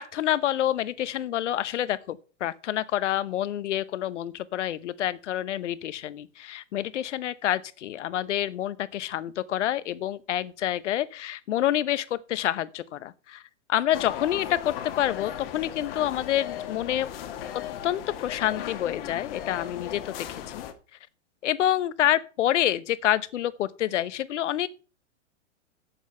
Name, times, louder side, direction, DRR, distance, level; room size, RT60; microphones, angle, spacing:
voice 1, 0.0-13.4 13.7-17.1 17.8-20.6 21.4-24.7, left 12 dB, 75° left, 1.0 m, -28 dB
sound 1, 13.9-20.7, left 10 dB, 50° left, 1.7 m, -37 dB
9.4 x 7.1 x 5.5 m
hypercardioid pair, 135°, 36 cm